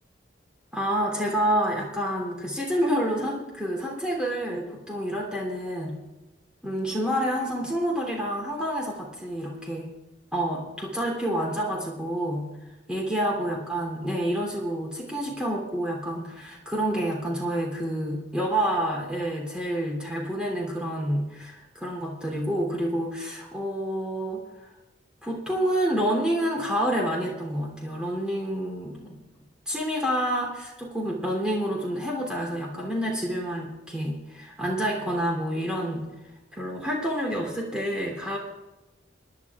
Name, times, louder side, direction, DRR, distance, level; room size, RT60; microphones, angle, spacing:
voice 1, 0.7-6.0 6.6-9.9 10.3-12.5 12.9-24.4 25.2-29.2 29.7-36.1 36.5-38.4, equal, 5° right, -2 dB, 3.1 m, -28 dB
26.0 x 11.0 x 2.4 m, 1.1 s
head